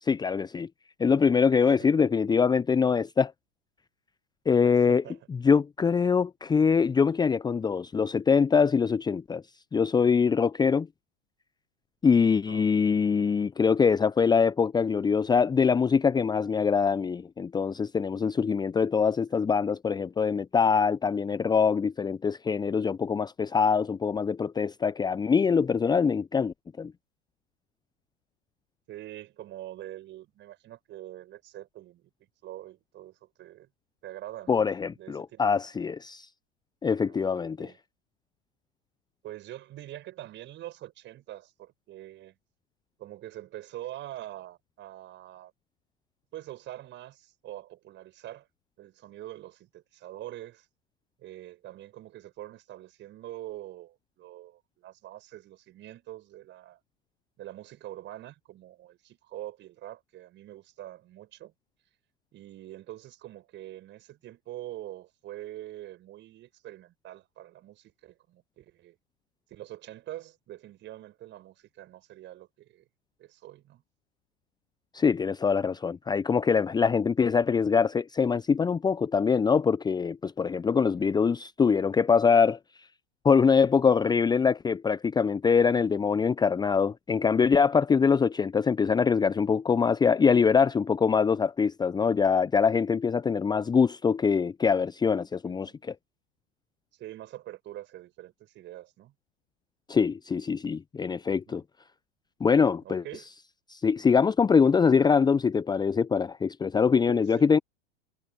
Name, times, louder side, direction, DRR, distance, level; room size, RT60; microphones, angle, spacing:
voice 1, 0.0-0.7 1.0-3.3 4.5-5.0 5.4-9.4 9.7-10.9 12.0-26.9 34.5-36.3 36.8-37.7 74.9-82.6 83.2-95.9 99.9-101.6 102.4-103.0 103.7-107.6, left 6 dB, 10° left, 1.0 m, -24 dB
voice 2, 4.6-5.2 12.5-12.7 19.3-19.4 28.9-32.1 32.4-33.7 34.0-34.6 34.9-35.6 36.9-37.8 39.2-42.4 43.0-45.5 46.3-48.5 48.8-50.7 51.2-56.8 57.4-61.5 62.3-69.0 69.5-72.9 73.2-73.8 80.8-81.1 95.4-95.8 96.9-99.1 101.3-101.6 102.8-103.3 106.9-107.5, right 14 dB, 35° right, 6.2 m, -44 dB
figure-of-eight pair, 90°, 34 cm